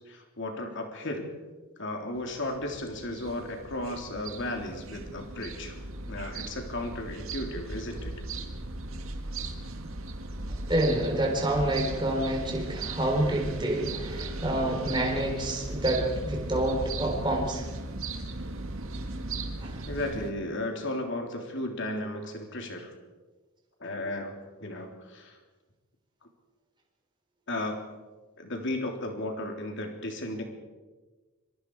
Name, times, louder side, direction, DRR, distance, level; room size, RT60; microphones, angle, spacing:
voice 1, 0.0-1.3 1.8-5.8 6.1-8.1 19.9-22.9 23.8-25.4 27.5-27.8 28.4-30.4, left 1 dB, 55° left, 3 dB, 3.4 m, -34 dB
sound 1, 2.2-20.3, right 2 dB, 65° right, 1.9 m, -37 dB
voice 2, 10.7-17.6 19.6-19.8, right 1 dB, 20° right, 0 dB, 4.0 m, -28 dB
26.0 x 23.0 x 4.8 m, 1.3 s
head